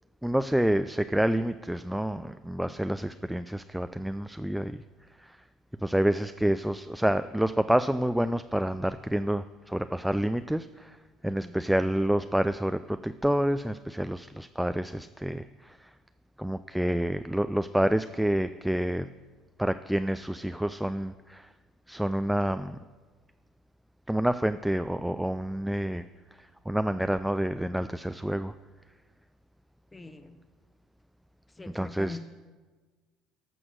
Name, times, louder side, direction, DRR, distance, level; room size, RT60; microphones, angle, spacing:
voice 1, 0.2-4.8 5.8-10.9 11.2-15.4 16.4-19.1 19.6-21.4 21.9-22.8 24.1-26.0 26.7-28.5 31.7-32.2, right 1 dB, 5° right, 11 dB, 0.3 m, -28 dB
voice 2, 11.3-11.6 29.9-30.3 31.6-32.2, left 3 dB, 20° left, 10 dB, 1.0 m, -42 dB
11.0 x 6.2 x 6.3 m, 1.4 s
hypercardioid pair, 65°, 0 cm